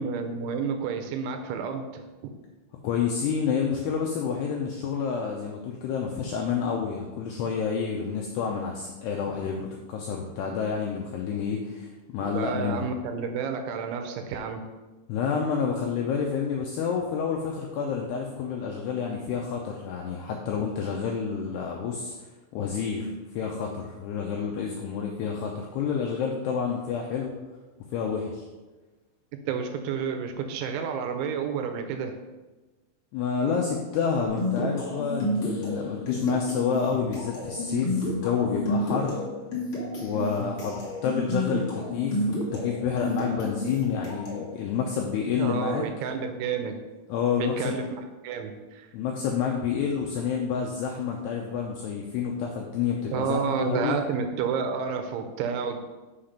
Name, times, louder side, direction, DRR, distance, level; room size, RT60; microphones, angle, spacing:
voice 1, 0.0-2.4 12.2-14.6 29.5-32.2 45.4-46.8 47.4-47.8 48.2-48.9 53.1-55.8, right 6 dB, 80° right, 5 dB, 2.9 m, -30 dB
voice 2, 2.8-12.8 15.1-22.1 22.5-27.3 27.9-28.5 33.1-39.2 40.0-45.8 47.1-47.8 48.9-54.0, left 6 dB, 85° left, 0 dB, 2.3 m, -29 dB
sound 1, 34.3-44.5, left 1 dB, 55° left, 1.5 m, -31 dB
6.8 x 5.8 x 5.1 m, 1.2 s
omnidirectional pair, 5.6 m